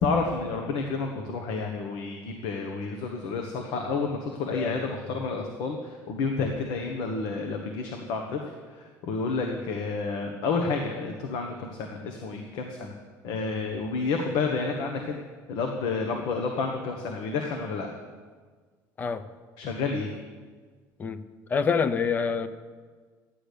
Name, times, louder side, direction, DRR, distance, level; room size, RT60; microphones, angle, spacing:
voice 1, 0.0-8.4 8.7-13.0 13.2-15.2 15.5-17.9 19.6-20.1, left 4 dB, 65° left, 3 dB, 1.3 m, -30 dB
voice 2, 21.5-22.5, left 5 dB, 20° left, 12 dB, 0.6 m, -26 dB
13.5 x 9.9 x 6.8 m, 1.5 s
cardioid pair, 170°, 8 cm